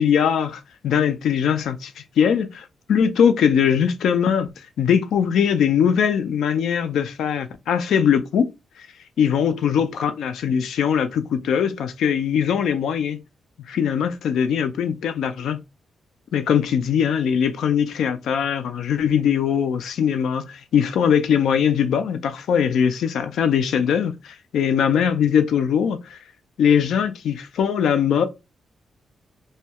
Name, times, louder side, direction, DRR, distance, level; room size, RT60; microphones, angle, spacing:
voice 1, 0.0-4.5 4.8-8.5 9.2-13.2 13.7-15.6 16.3-26.2 26.6-28.3, left 8 dB, 85° left, 0.3 m, -21 dB
2.2 x 2.1 x 2.7 m
wide cardioid pair, 180°, 0 cm